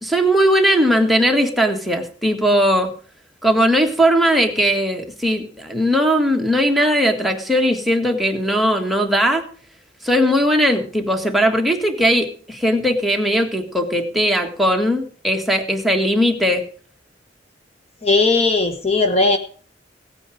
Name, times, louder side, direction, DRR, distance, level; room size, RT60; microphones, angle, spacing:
voice 1, 0.0-2.9 3.4-9.5 10.0-16.7, equal, ahead, 2 dB, 1.6 m, -18 dB
voice 2, 18.0-19.4, left 3 dB, 35° left, 7 dB, 1.2 m, -17 dB
17.0 x 9.1 x 5.0 m, 0.43 s
head